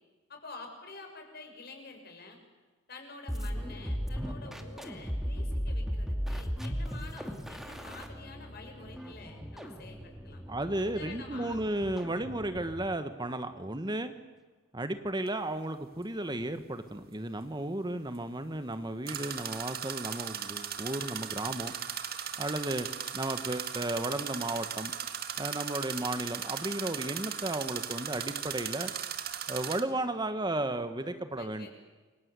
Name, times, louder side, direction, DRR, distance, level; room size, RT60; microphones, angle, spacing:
voice 1, 0.3-2.4 2.9-10.4 10.8-11.6 31.3-31.7, left 3 dB, 55° left, 4 dB, 6.6 m, -48 dB
sound 1, 3.3-13.0, equal, ahead, 2.4 m, -37 dB
voice 2, 10.5-14.1 14.7-21.7 22.4-22.9 23.1-24.9 25.4-28.9 29.5-31.7, right 1 dB, 20° right, 10 dB, 1.4 m, -34 dB
sound 2, 15.3-15.4 19.1-29.8, right 8 dB, 50° right, 2.1 m, -37 dB
28.5 x 24.0 x 8.3 m, 1.3 s
head